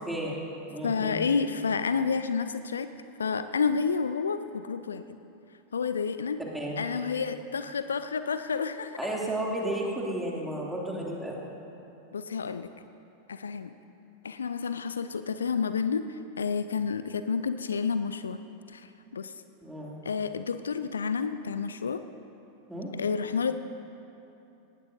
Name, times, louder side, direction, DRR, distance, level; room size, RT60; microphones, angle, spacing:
voice 1, 0.1-0.4 0.7-1.2 6.5-6.8 9.0-11.5 19.6-19.9 22.7-22.9, right 1 dB, 5° right, -4 dB, 2.8 m, -33 dB
voice 2, 0.8-2.9 3.2-5.2 5.7-6.4 6.8-9.0 12.1-12.7 13.3-13.7 14.2-18.4 18.7-19.3 20.0-22.0 22.9-23.5, left 5 dB, 70° left, 11 dB, 0.4 m, -30 dB
19.0 x 18.5 x 2.7 m, 2.9 s
figure-of-eight pair, 90°, 0 cm